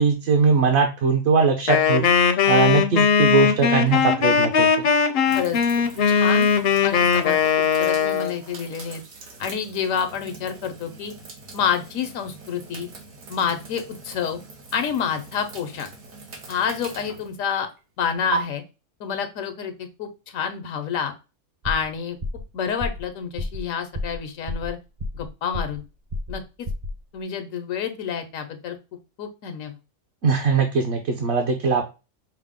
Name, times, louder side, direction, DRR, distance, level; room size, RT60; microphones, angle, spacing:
voice 1, 0.0-4.9 30.2-31.8, right 5 dB, 60° right, 3 dB, 0.9 m, -21 dB
Wind instrument woodwind instrument, 1.7-8.3, left 6 dB, 60° left, 0.7 m, -19 dB
sound 1, 5.2-18.4, right 6 dB, 85° right, 1.4 m, -40 dB
voice 2, 6.1-6.5 6.8-9.0 9.4-11.1 11.5-12.9 13.3-14.4 14.7-15.9 16.5-17.7 18.0-18.6 19.0-21.1 21.6-22.2 22.5-24.8 25.1-25.8 26.3-26.7 27.1-28.8 29.2-29.7, left 7 dB, 85° left, 7 dB, 1.1 m, -28 dB
sound 2, 21.6-21.9 22.2-22.5 22.8-23.1 23.4-23.6 23.9-24.2 24.5-25.3 25.5-25.8 26.1-26.4 26.7-27.0, left 2 dB, 40° right, 0.7 m, -30 dB
5.6 x 2.0 x 3.5 m, 0.29 s
omnidirectional pair, 1.4 m